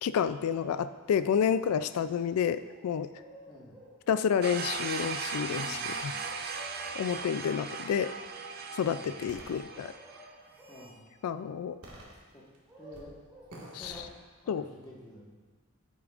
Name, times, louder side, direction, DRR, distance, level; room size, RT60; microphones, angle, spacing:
voice 1, 0.0-3.1 4.1-6.1 6.9-8.1 8.7-9.9 11.2-11.8 13.8-13.9 14.5-14.6, left 7 dB, 85° left, 14 dB, 0.3 m, -29 dB
sound 1, 0.6-1.3 2.6-4.0 6.2-7.4 9.7-10.9 12.4-13.6, equal, 10° right, 2.3 m, -53 dB
voice 2, 3.5-3.8 5.4-6.2 8.9-9.2 10.5-11.1 12.3-12.4 12.8-14.1 14.4-15.4, equal, 20° left, -5 dB, 1.5 m, -50 dB
sound 2, 4.4-10.3, right 5 dB, 45° right, 0.5 m, -37 dB
sound 3, 9.3-9.6 10.3-10.9 11.8-12.6 12.9-13.1 13.5-14.1, right 1 dB, 90° right, 1.7 m, -49 dB
10.5 x 8.3 x 2.4 m, 1.4 s
head